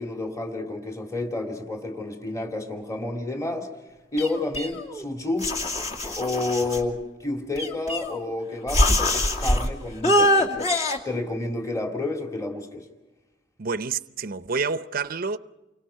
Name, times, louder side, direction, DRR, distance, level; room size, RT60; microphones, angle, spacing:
voice 1, 0.0-3.7 4.1-5.5 6.2-10.7 11.0-12.9, left 2 dB, 20° left, 2.5 m, -30 dB
sound 1, 4.2-5.0 5.4-6.8 7.6-8.3 8.7-9.7 10.0-11.0, left 1 dB, 35° left, 2.6 m, -23 dB
voice 2, 13.6-15.4, right 4 dB, 55° right, 0.7 m, -28 dB
29.0 x 24.5 x 5.7 m
head